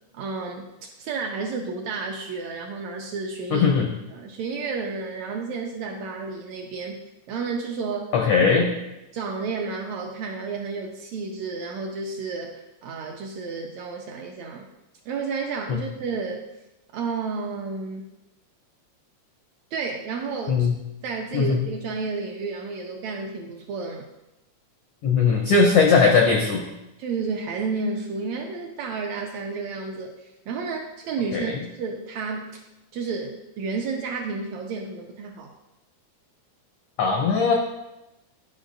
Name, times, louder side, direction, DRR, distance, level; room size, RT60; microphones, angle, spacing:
voice 1, 0.1-3.7 4.1-7.0 7.3-8.2 9.1-14.7 15.1-16.4 16.9-18.1 19.7-20.7 21.0-24.1 27.0-32.6 32.9-35.5, right 4 dB, 80° right, 1 dB, 1.6 m, -31 dB
voice 2, 3.5-3.9 8.1-8.7 15.7-15.8 20.5-20.8 21.3-21.6 25.0-26.6 31.3-31.4 37.0-37.5, left 5 dB, 80° left, 1 dB, 1.3 m, -19 dB
11.0 x 5.3 x 2.5 m, 0.95 s
omnidirectional pair, 3.6 m